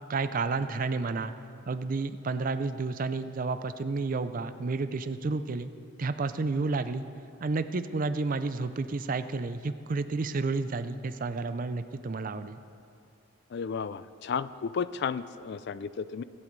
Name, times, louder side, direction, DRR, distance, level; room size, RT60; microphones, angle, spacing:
voice 1, 0.1-1.3 1.7-5.7 6.0-7.1 7.4-12.6, right 3 dB, 40° right, 11 dB, 0.4 m, -31 dB
voice 2, 13.5-16.2, left 6 dB, 55° left, 16 dB, 0.3 m, -33 dB
23.5 x 8.7 x 3.2 m, 2.6 s
head